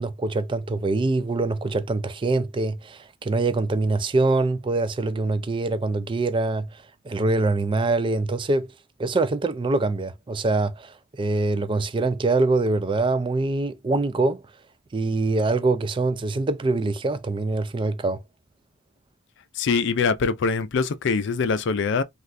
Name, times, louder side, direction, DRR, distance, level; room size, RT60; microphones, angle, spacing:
voice 1, 0.0-6.7 7.1-8.7 9.0-14.4 14.9-18.2, right 3 dB, 25° right, 0.3 m, -24 dB
voice 2, 19.5-22.0, left 5 dB, 60° left, 0.4 m, -23 dB
3.3 x 2.4 x 2.5 m
head